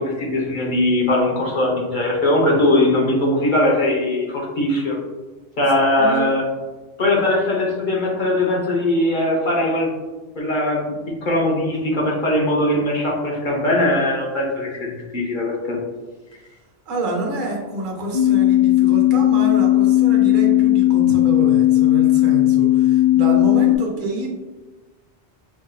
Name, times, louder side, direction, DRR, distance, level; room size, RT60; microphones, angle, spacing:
voice 1, 0.0-5.0 5.6-6.4 7.0-9.9 10.4-10.9 11.2-15.8, left 1 dB, 50° left, -2 dB, 0.9 m, -20 dB
voice 2, 6.0-6.3 16.9-24.3, right 2 dB, 55° right, -1 dB, 0.8 m, -27 dB
sound 1, 18.1-23.8, left 15 dB, 90° left, 1.4 m, -16 dB
4.9 x 2.6 x 2.2 m, 1.2 s
omnidirectional pair, 1.1 m